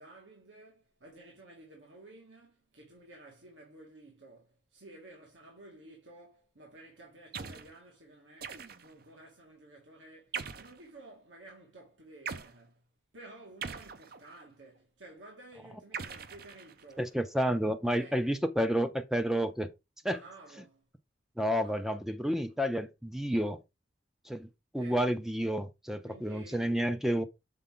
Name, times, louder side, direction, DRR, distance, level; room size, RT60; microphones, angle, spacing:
voice 1, 0.0-12.9 13.1-17.2 18.0-18.2 20.0-20.9 21.6-21.8 22.4-22.5 24.8-25.0 26.1-26.9, right 2 dB, 80° right, 1.9 m, -53 dB
sound 1, 7.3-7.7 8.4-9.0 10.3-10.8 12.3-12.5 13.6-14.5 15.9-17.0, right 6 dB, 50° right, 0.6 m, -41 dB
voice 2, 17.0-19.7 20.0-20.2 21.4-23.6 24.3-24.5 24.7-27.3, equal, ahead, 0.4 m, -30 dB
6.7 x 4.7 x 3.8 m
head